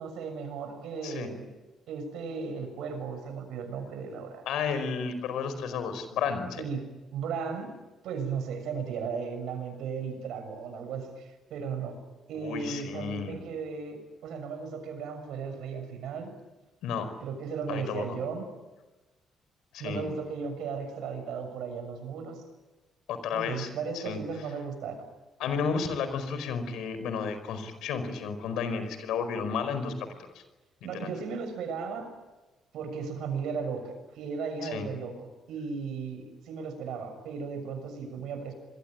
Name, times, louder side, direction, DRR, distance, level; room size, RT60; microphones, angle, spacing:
voice 1, 0.0-1.5 1.9-4.5 6.6-6.9 7.1-7.7 8.0-12.0 12.3-16.3 17.2-18.4 19.8-22.4 23.3-25.0 30.8-32.1 32.7-35.2 35.5-38.5, right 5 dB, 75° right, 8 dB, 6.7 m, -36 dB
voice 2, 4.5-6.6 12.3-13.4 16.8-17.1 17.7-18.2 19.7-20.1 23.1-23.7 23.9-24.2 25.4-29.9 30.3-30.4 30.9-31.1 34.6-34.9, left 6 dB, 85° left, 10 dB, 4.9 m, -32 dB
27.5 x 22.0 x 9.1 m, 1.1 s
cardioid pair, 145°, 0 cm